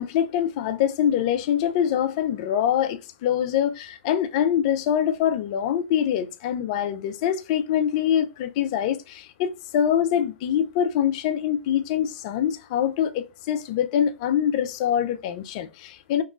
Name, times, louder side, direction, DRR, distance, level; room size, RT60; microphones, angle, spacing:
voice 1, 0.0-16.2, left 9 dB, 35° left, 0.3 m, -24 dB
2.9 x 2.8 x 2.3 m
hypercardioid pair, 140°, 6 cm